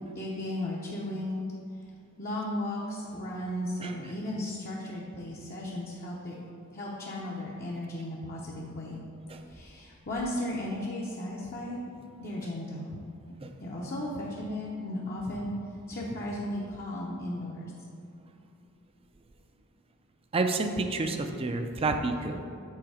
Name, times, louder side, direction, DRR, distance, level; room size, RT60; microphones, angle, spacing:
voice 1, 0.1-1.4 2.2-6.3 6.7-9.0 9.5-11.8 12.2-13.0 13.6-15.5 15.9-17.7, left 1 dB, 40° left, -4 dB, 0.7 m, -35 dB
voice 2, 20.3-22.4, right 3 dB, 25° right, 6 dB, 0.4 m, -29 dB
7.7 x 4.0 x 4.9 m, 2.5 s
head